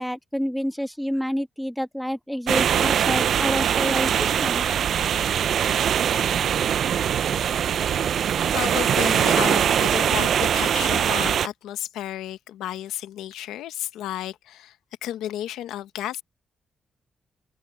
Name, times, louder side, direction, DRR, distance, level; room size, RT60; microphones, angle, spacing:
voice 1, 0.0-4.6, equal, ahead, 1.8 m, -28 dB
sound 1, 2.5-11.5, right 9 dB, 70° right, 0.6 m, -22 dB
voice 2, 7.8-8.2 8.5-14.8 15.0-16.2, left 12 dB, 90° left, 1.2 m, -32 dB
supercardioid pair, 60°, 0 cm